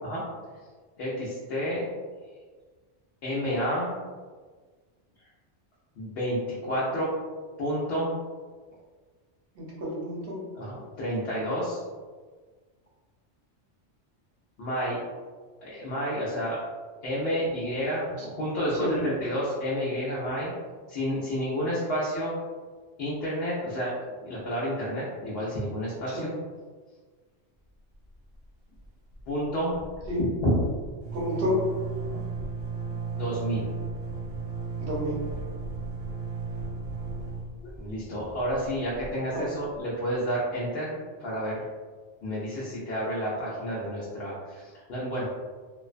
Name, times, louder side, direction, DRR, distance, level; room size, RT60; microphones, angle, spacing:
voice 1, 1.0-1.9 3.2-3.9 6.0-7.1 7.6-8.2 10.5-11.8 14.6-15.0 15.6-16.6 17.0-20.5 20.9-22.3 23.0-23.9 24.2-26.3 29.3-29.7 30.4-30.6 32.0-32.2 32.9-33.7 37.8-41.7 42.2-45.3, equal, 65° left, -7 dB, 0.8 m, -30 dB
voice 2, 9.6-10.4 18.8-19.0 26.1-26.3 30.1-30.2 31.1-31.6 34.8-35.2 39.3-39.6, left 1 dB, 60° right, -5 dB, 0.9 m, -30 dB
sound 1, 27.9-28.5 28.7-28.9 29.1-39.8, right 4 dB, 40° right, 0.6 m, -36 dB
2.5 x 2.1 x 2.4 m, 1.5 s
omnidirectional pair, 1.1 m